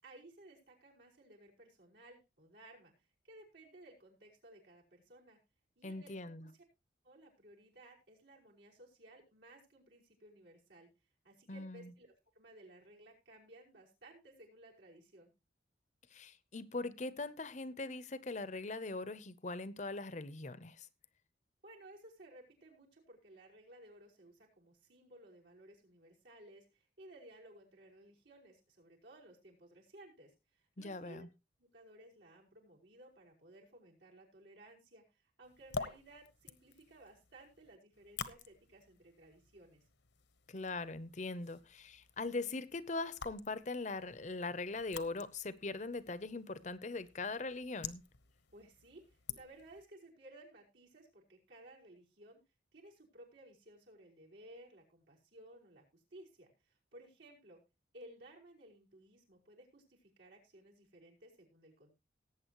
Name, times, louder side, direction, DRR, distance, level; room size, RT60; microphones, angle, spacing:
voice 1, 0.0-5.4 5.8-6.6 7.0-10.9 11.2-15.3 21.6-31.3 31.6-39.8 48.5-52.4 52.7-57.6 57.9-62.0, right 1 dB, 75° right, 5.4 m, -58 dB
voice 2, 5.8-6.5 11.5-11.9 16.1-20.9 30.8-31.3 40.5-48.0, left 3 dB, 40° left, 0.7 m, -41 dB
sound 1, 35.4-49.8, left 5 dB, 75° left, 1.0 m, -50 dB
18.5 x 8.7 x 3.0 m
head